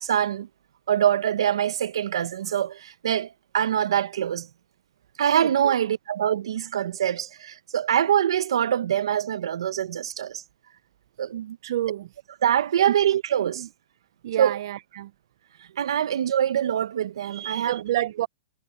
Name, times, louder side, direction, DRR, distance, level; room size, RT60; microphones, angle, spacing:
voice 1, 0.0-0.5 0.9-4.5 5.2-10.4 11.2-11.6 12.4-13.6 14.4-14.6 15.8-17.8, right 10 dB, 85° right, 1.2 m, -24 dB
voice 2, 5.4-5.7 11.6-12.1 12.9-13.0 13.6-13.7 14.2-15.1 16.0-16.1 17.7-18.3, right 13 dB, 60° right, 0.6 m, -28 dB
hypercardioid pair, 160°, 3 cm